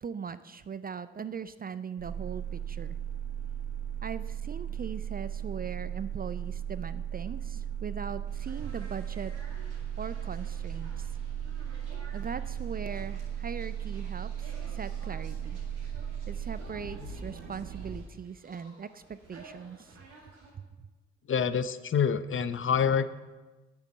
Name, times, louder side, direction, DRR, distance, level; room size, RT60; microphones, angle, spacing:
voice 1, 0.0-3.0 4.0-9.3 10.0-11.1 12.1-15.6 16.3-20.0 20.8-20.9, right 6 dB, 25° right, 14 dB, 0.5 m, -40 dB
sound 1, 2.0-18.0, right 9 dB, 65° right, 1.4 m, -36 dB
sound 2, 8.3-20.5, right 2 dB, 80° right, 2.3 m, -52 dB
voice 2, 21.3-23.1, left 7 dB, 35° left, 13 dB, 0.7 m, -26 dB
9.4 x 7.1 x 7.4 m, 1.2 s
figure-of-eight pair, 40°, 34 cm